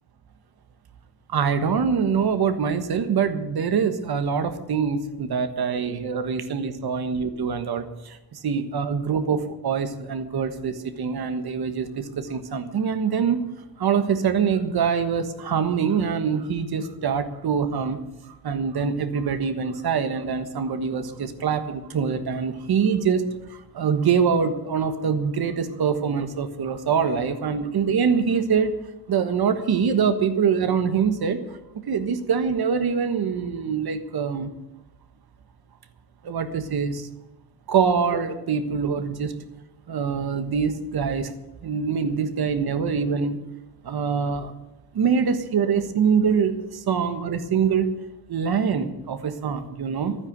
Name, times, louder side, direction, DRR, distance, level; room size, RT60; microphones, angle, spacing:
voice 1, 1.3-13.4 13.8-18.0 18.4-23.2 23.5-28.8 29.1-31.6 31.9-34.5 36.2-37.1 37.7-39.3 39.9-41.3 41.6-43.4 43.8-44.5 44.9-47.9 48.3-50.2, right 6 dB, 80° right, 9 dB, 1.4 m, -24 dB
12.5 x 9.5 x 8.1 m, 1.0 s
wide cardioid pair, 145°, 37 cm